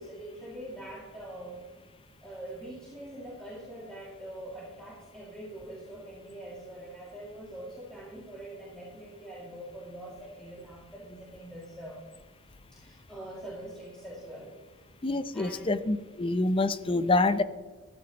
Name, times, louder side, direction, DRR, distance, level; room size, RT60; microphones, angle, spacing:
voice 1, 0.0-1.6 2.2-12.0 12.7-14.6 15.3-15.8, right 1 dB, 5° left, -7 dB, 2.4 m, -44 dB
voice 2, 15.0-17.4, left 2 dB, 25° left, 13 dB, 0.5 m, -26 dB
14.0 x 12.5 x 3.0 m, 1.4 s
head